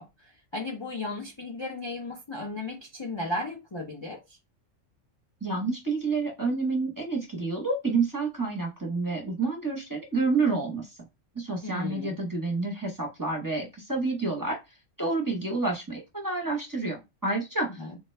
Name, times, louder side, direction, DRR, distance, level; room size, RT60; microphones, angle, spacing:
voice 1, 0.0-4.4 11.6-12.2 17.8-18.0, left 2 dB, 40° left, 0.4 m, -35 dB
voice 2, 5.4-10.9 11.3-14.6 15.0-17.8, right 3 dB, 20° right, 0.8 m, -29 dB
3.7 x 2.2 x 3.1 m
omnidirectional pair, 1.3 m